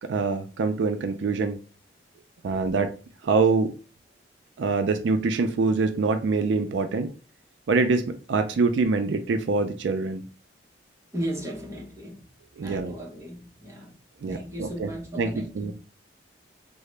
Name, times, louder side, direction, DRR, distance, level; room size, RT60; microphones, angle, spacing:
voice 1, 0.0-1.6 2.4-2.9 3.2-3.7 4.6-7.1 7.7-10.2 12.6-12.9 14.2-14.9 15.2-15.7, right 4 dB, 80° right, 0.4 m, -24 dB
voice 2, 11.1-12.2 12.6-14.0 14.3-15.7, right 1 dB, 15° right, 0.9 m, -35 dB
3.7 x 2.0 x 3.2 m
head